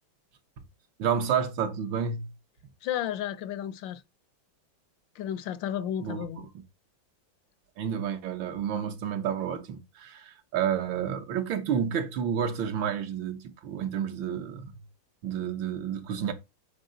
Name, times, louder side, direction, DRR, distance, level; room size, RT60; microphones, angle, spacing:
voice 1, 1.0-2.3 6.0-6.3 7.8-14.8 15.2-16.3, right 8 dB, 80° right, 1.8 m, -30 dB
voice 2, 2.8-4.0 5.2-6.5, left 10 dB, 75° left, 1.4 m, -33 dB
7.9 x 4.7 x 3.9 m
omnidirectional pair, 2.1 m